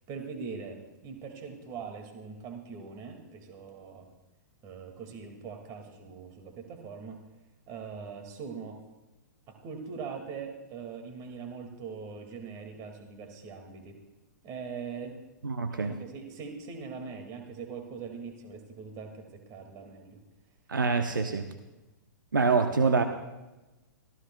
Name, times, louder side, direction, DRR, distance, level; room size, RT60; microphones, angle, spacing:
voice 1, 0.1-4.1 4.6-7.2 7.7-8.8 9.5-14.0 14.4-15.1 15.7-20.2, right 5 dB, 35° right, 4 dB, 2.1 m, -42 dB
voice 2, 15.4-16.0 20.7-21.5 22.3-23.0, right 4 dB, 90° right, 7 dB, 0.9 m, -25 dB
25.0 x 15.0 x 2.3 m, 1.1 s
hypercardioid pair, 120°, 10 cm